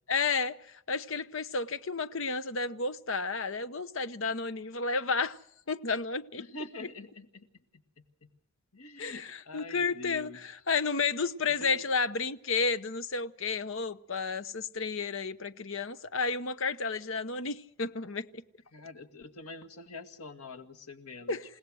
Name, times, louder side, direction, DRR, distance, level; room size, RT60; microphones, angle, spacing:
voice 1, 0.1-5.4 5.7-6.4 9.0-18.4 21.3-21.4, left 4 dB, 60° left, 0.9 m, -32 dB
voice 2, 6.4-7.5 7.7-8.4 8.7-10.5 11.5-11.8 18.7-21.4, left 2 dB, 85° left, 2.0 m, -46 dB
29.0 x 17.5 x 6.4 m
head